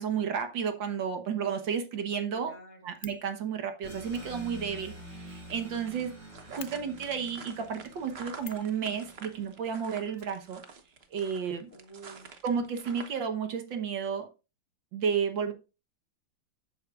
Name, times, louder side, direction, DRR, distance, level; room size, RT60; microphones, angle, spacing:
voice 1, 0.0-2.5 2.8-6.1 6.5-10.6 11.1-11.7 12.4-14.3 14.9-15.5, right 7 dB, 65° right, 6 dB, 1.8 m, -32 dB
voice 2, 2.3-3.0 11.7-12.4, right 3 dB, 50° left, 2 dB, 2.5 m, -49 dB
Fire, 2.5-3.3 4.0-5.8 6.1-6.2 6.6-6.7 8.4-8.7 10.1-11.0 11.3-11.4 11.6-11.7, left 10 dB, 85° left, 0.7 m, -49 dB
sound 1, 3.8-10.1, equal, 25° right, 6.3 m, -48 dB
sound 2, 5.5-13.3, right 5 dB, 45° right, 0.9 m, -48 dB
12.0 x 8.4 x 2.4 m, 0.30 s
omnidirectional pair, 2.4 m